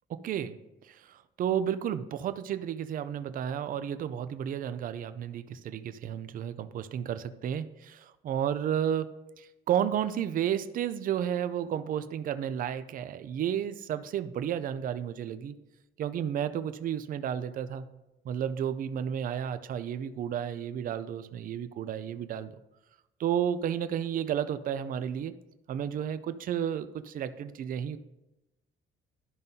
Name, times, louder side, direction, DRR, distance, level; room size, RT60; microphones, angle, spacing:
voice 1, 0.1-0.6 0.8-15.6 16.0-17.9 18.2-22.5 23.2-25.3 25.7-28.0, right 9 dB, 45° right, 12 dB, 0.4 m, -32 dB
12.5 x 5.4 x 2.7 m, 0.96 s
cardioid pair, 170°, 21 cm